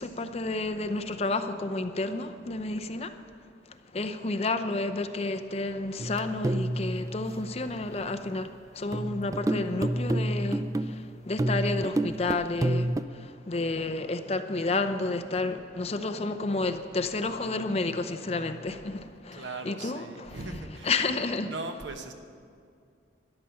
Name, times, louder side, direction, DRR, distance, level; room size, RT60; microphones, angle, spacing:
voice 1, 0.0-3.1 3.9-21.9, left 3 dB, 35° left, 8 dB, 0.6 m, -31 dB
sound 1, 6.0-7.9 8.9-13.0, right 1 dB, 20° right, 0.3 m, -30 dB
voice 2, 19.3-20.9 21.5-22.1, right 2 dB, 85° right, 6 dB, 1.0 m, -38 dB
13.0 x 11.0 x 5.7 m, 2.3 s
head